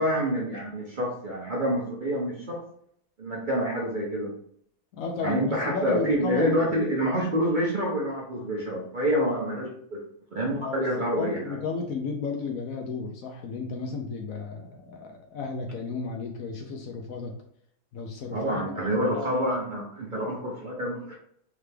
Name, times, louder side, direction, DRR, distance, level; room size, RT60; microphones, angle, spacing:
voice 1, 0.0-2.5 3.2-4.3 5.2-10.0 10.3-11.6 18.3-21.2, equal, 50° right, -3 dB, 0.6 m, -27 dB
voice 2, 4.9-6.8 10.6-17.4 17.9-18.8 19.1-19.4, left 4 dB, 85° left, 3 dB, 0.7 m, -33 dB
3.8 x 3.3 x 3.3 m, 0.66 s
omnidirectional pair, 2.2 m